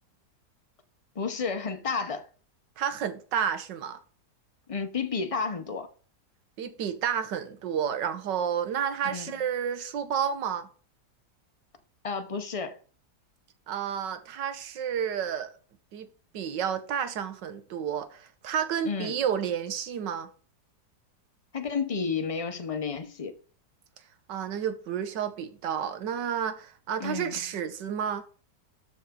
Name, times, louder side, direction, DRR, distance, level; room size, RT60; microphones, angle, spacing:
voice 1, 1.2-2.3 4.7-5.9 9.0-9.3 12.0-12.8 18.8-19.1 21.5-23.3 27.0-27.3, left 5 dB, 55° left, 0.3 m, -31 dB
voice 2, 2.8-4.0 6.6-10.7 13.7-15.5 15.9-16.1 16.3-20.3 24.3-28.2, right 8 dB, 80° right, 1.6 m, -31 dB
13.0 x 4.7 x 3.7 m
omnidirectional pair, 1.9 m